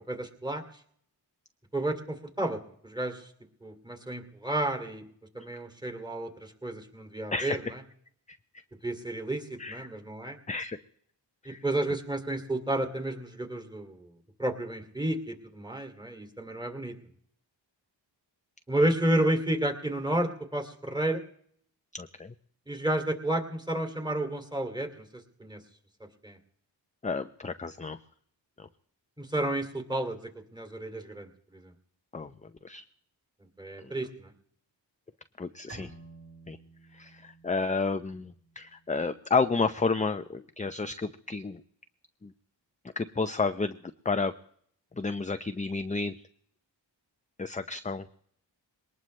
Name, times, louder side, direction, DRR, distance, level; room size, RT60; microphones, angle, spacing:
voice 1, 0.1-0.6 1.7-3.3 3.6-5.0 5.3-7.8 8.8-10.4 11.4-14.1 14.4-16.9 18.7-21.2 22.7-25.6 26.2-26.4 29.2-31.7 33.6-34.3, right 1 dB, 10° right, 6 dB, 2.5 m, -31 dB
voice 2, 10.5-10.8 11.4-11.6 21.9-22.3 27.0-28.0 28.6-28.7 32.1-32.8 33.8-33.9 35.4-35.9 36.5-36.6 36.9-41.6 42.2-42.3 43.0-43.8 44.0-44.3 45.0-46.2 47.4-48.1, left 4 dB, 15° left, 9 dB, 0.6 m, -31 dB
Bowed string instrument, 35.7-39.2, right 2 dB, 30° right, 7.3 m, -52 dB
21.5 x 19.0 x 3.2 m, 0.65 s
cardioid pair, 75°, 45 cm